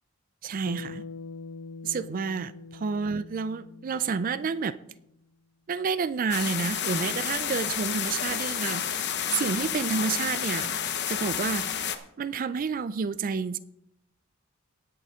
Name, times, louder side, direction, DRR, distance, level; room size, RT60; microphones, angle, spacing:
voice 1, 0.4-1.0 1.8-4.8 5.7-10.7 11.1-13.6, right 5 dB, 40° right, 0.4 m, -30 dB
Bass guitar, 0.7-5.0, left 4 dB, 80° left, 0.5 m, -44 dB
sound 1, 6.3-12.0, left 8 dB, 55° left, 0.8 m, -30 dB
19.0 x 6.9 x 3.6 m
head